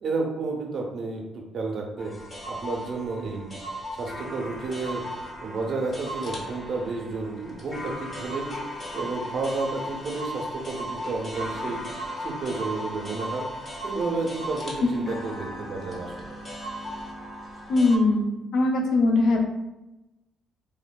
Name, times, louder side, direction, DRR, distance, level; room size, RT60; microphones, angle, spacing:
voice 1, 0.0-1.2 1.5-2.1 2.5-3.6 4.0-5.0 5.4-8.5 8.9-11.8 12.2-13.5 13.8-16.4, right 3 dB, 60° right, 0 dB, 0.6 m, -31 dB
sound 1, 2.0-18.0, equal, 35° left, 0.7 m, -36 dB
voice 2, 17.7-18.3 18.5-19.5, left 2 dB, 70° left, 2 dB, 0.5 m, -20 dB
3.1 x 2.0 x 2.2 m, 0.97 s
cardioid pair, 90°, 0 cm